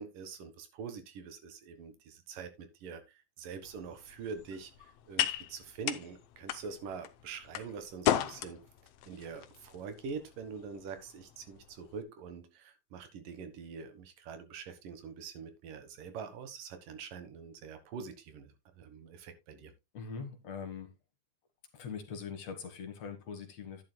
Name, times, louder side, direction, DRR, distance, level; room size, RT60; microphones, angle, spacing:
voice 1, 0.0-8.7 9.1-19.7, right 5 dB, 85° right, 3.1 m, -44 dB
sound 1, 3.6-12.0, left 11 dB, 75° left, 1.4 m, -37 dB
voice 2, 19.9-20.9 21.7-23.8, left 6 dB, 60° left, 2.5 m, -42 dB
10.5 x 10.5 x 2.2 m
omnidirectional pair, 3.7 m